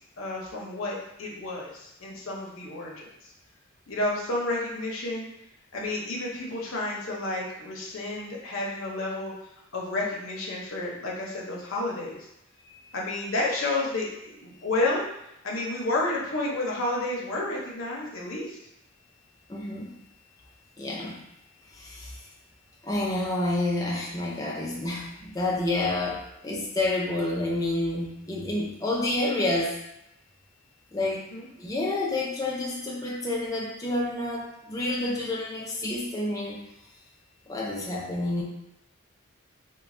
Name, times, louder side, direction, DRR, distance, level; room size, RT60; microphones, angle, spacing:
voice 1, 0.2-3.3 3.9-5.3 5.7-9.3 9.7-12.3 12.9-15.0 15.4-18.6 31.1-31.5, left 2 dB, 75° left, -3 dB, 0.7 m, -31 dB
voice 2, 19.5-20.0 20.8-21.2 21.7-22.3 22.8-29.8 30.9-31.3 31.6-36.6 37.5-38.4, left 2 dB, 15° left, -4 dB, 0.4 m, -29 dB
3.1 x 2.2 x 2.5 m, 0.84 s
head